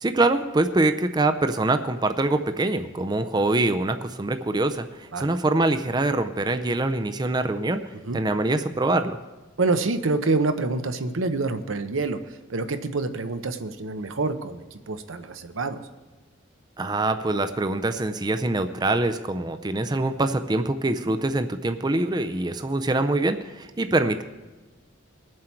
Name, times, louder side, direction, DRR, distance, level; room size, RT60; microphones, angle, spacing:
voice 1, 0.0-7.8 8.1-9.2 16.8-24.2, right 2 dB, 20° right, 9 dB, 0.5 m, -24 dB
voice 2, 9.6-15.8, right 3 dB, 85° right, 8 dB, 0.8 m, -27 dB
21.0 x 7.6 x 4.5 m, 1.2 s
head